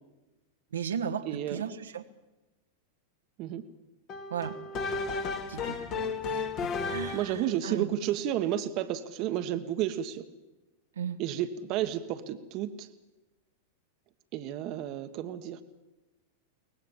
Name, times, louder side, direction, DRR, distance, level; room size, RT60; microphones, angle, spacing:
voice 1, 0.7-2.1 4.3-4.6 5.5-5.8 6.2-7.9 10.9-11.2, right 7 dB, 80° right, 5 dB, 1.5 m, -36 dB
voice 2, 1.3-1.6 3.4-3.6 7.1-10.2 11.2-12.9 14.3-15.6, right 11 dB, 45° right, 8 dB, 1.4 m, -31 dB
sound 1, 4.1-7.4, left 4 dB, 40° left, 2.3 m, -33 dB
23.5 x 19.0 x 7.4 m, 1.1 s
hypercardioid pair, 100°, 0 cm